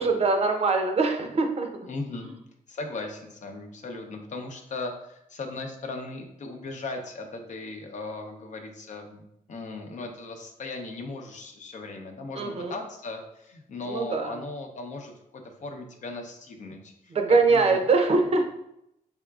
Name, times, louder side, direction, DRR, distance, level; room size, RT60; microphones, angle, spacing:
voice 1, 0.0-1.7 2.2-2.3 12.4-12.8 13.9-14.4 17.1-18.5, right 3 dB, 45° right, 4 dB, 0.6 m, -23 dB
voice 2, 1.9-2.3 2.7-17.8, left 3 dB, 55° left, 3 dB, 0.7 m, -38 dB
4.6 x 3.6 x 2.4 m, 0.81 s
cardioid pair, 100°, 15 cm